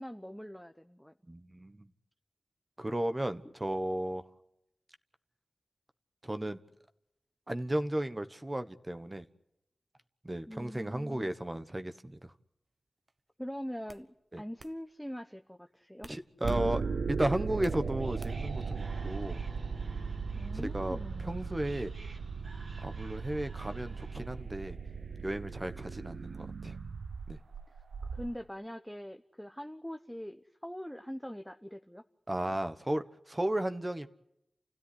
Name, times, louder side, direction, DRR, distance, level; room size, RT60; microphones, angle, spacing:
voice 1, 0.0-1.1 10.5-11.3 13.4-14.1 14.4-16.1 20.3-21.5 28.1-32.0, equal, 5° left, 7 dB, 0.9 m, -43 dB
voice 2, 1.3-1.9 2.8-4.2 6.2-6.6 7.5-9.3 10.2-12.3 14.3-14.4 16.1-19.4 20.5-21.9 22.8-24.8 25.2-26.8 27.3-27.4 32.3-34.1, right 1 dB, 20° right, 9 dB, 1.3 m, -34 dB
sound 1, 13.1-13.3 13.9-14.1 14.6-14.8 16.0-16.7 17.0-17.8 18.2-18.6, right 2 dB, 45° right, 1.2 m, -52 dB
sound 2, 16.4-28.3, right 5 dB, 80° right, 0.9 m, -37 dB
Whispering, 17.6-24.5, right 3 dB, 60° right, 2.3 m, -53 dB
29.5 x 16.5 x 10.0 m, 0.84 s
wide cardioid pair, 95°, 0 cm